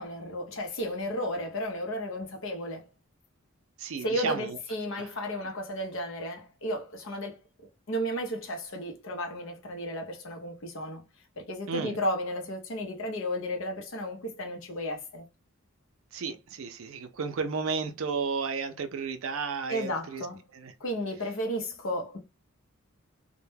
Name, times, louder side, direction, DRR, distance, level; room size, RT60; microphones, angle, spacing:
voice 1, 0.0-2.9 4.0-7.4 7.9-11.0 11.4-15.3 19.7-20.5 20.8-22.2, equal, 65° left, 0.7 m, -33 dB
voice 2, 3.8-4.6 5.0-5.1 11.7-12.0 16.1-20.3 20.5-20.7, right 5 dB, 70° right, 0.4 m, -33 dB
2.1 x 2.1 x 3.1 m
head